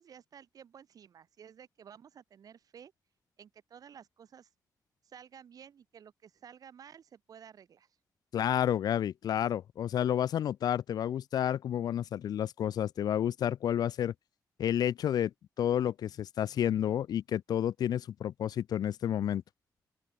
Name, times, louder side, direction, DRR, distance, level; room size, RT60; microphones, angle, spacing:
voice 1, 0.0-2.9 3.4-4.5 5.0-8.0, right 8 dB, 60° right, 3.4 m, -53 dB
voice 2, 8.3-14.1 14.6-15.3 15.6-19.4, left 10 dB, 70° left, 0.4 m, -30 dB
open air
wide cardioid pair, 165°, 7 cm